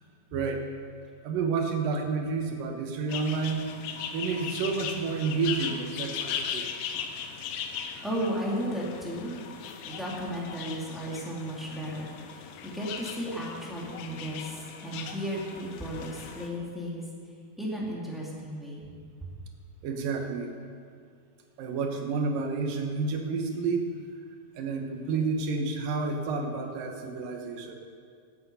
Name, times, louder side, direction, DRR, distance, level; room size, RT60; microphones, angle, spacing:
voice 1, 0.3-0.6 1.2-3.6 4.1-6.7 19.8-20.6 21.6-23.9 24.6-27.7, right 4 dB, 70° right, 3 dB, 2.7 m, -30 dB
sound 1, 3.1-16.5, left 7 dB, 85° left, 2.8 m, -38 dB
voice 2, 8.0-9.3 9.8-17.0 17.6-18.9 19.2-19.3, equal, ahead, -5 dB, 1.4 m, -34 dB
17.5 x 8.6 x 5.5 m, 2.2 s
omnidirectional pair, 4.5 m